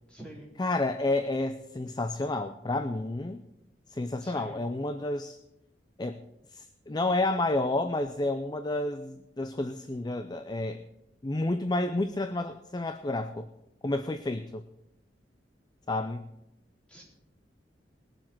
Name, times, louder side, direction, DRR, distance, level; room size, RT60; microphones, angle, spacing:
voice 1, 0.1-0.5 4.2-4.6 16.9-17.0, right 1 dB, 5° left, -5 dB, 4.1 m, -46 dB
voice 2, 0.6-3.4 3.9-5.4 6.0-6.2 6.5-10.8 11.2-13.5 13.8-14.6 15.9-16.3, left 2 dB, 25° left, 9 dB, 0.5 m, -30 dB
20.5 x 7.5 x 4.5 m, 0.89 s
head